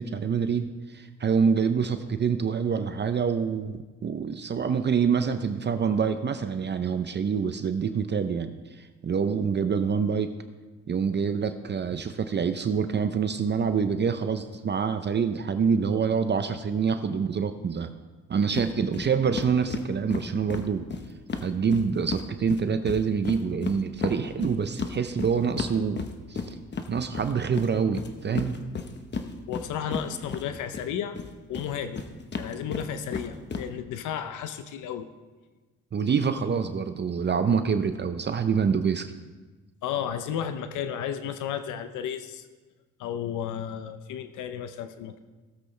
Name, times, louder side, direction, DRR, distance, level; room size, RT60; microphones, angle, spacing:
voice 1, 0.0-8.5 8.8-10.3 10.9-17.9 18.3-20.9 21.4-26.0 26.3-26.6 26.9-28.6 35.9-39.1, right 6 dB, 35° right, 9 dB, 0.6 m, -26 dB
sound 1, 18.5-18.7 18.9-19.1 19.3-22.2 22.5-30.9 31.2-33.6, left 5 dB, 35° left, 1.0 m, -33 dB
voice 2, 29.5-31.2 31.5-32.0 32.4-35.1 39.8-42.5 43.0-45.2, left 9 dB, 85° left, 10 dB, 0.7 m, -33 dB
17.0 x 7.8 x 3.3 m, 1.3 s
cardioid pair, 90°, 30 cm